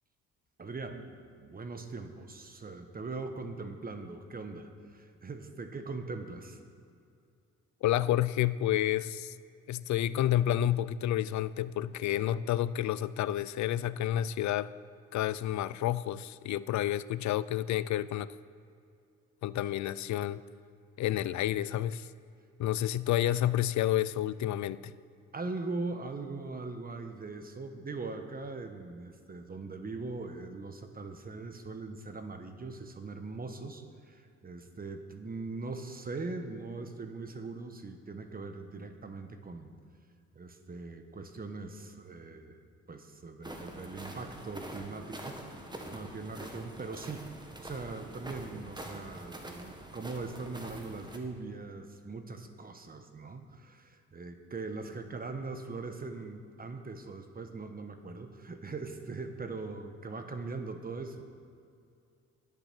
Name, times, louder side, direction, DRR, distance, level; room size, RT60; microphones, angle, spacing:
voice 1, 0.6-6.6 25.3-39.7 40.3-42.6 42.9-47.3 47.6-61.3, right 3 dB, 30° right, 7 dB, 1.2 m, -41 dB
voice 2, 7.8-9.3 9.7-14.7 15.1-18.3 19.4-20.4 21.0-22.1 22.6-24.9, left 12 dB, 70° left, 17 dB, 0.5 m, -30 dB
sound 1, 43.4-51.2, right 1 dB, 15° right, 1.7 m, -45 dB
11.5 x 10.5 x 6.1 m, 2.4 s
cardioid pair, 90°, 30 cm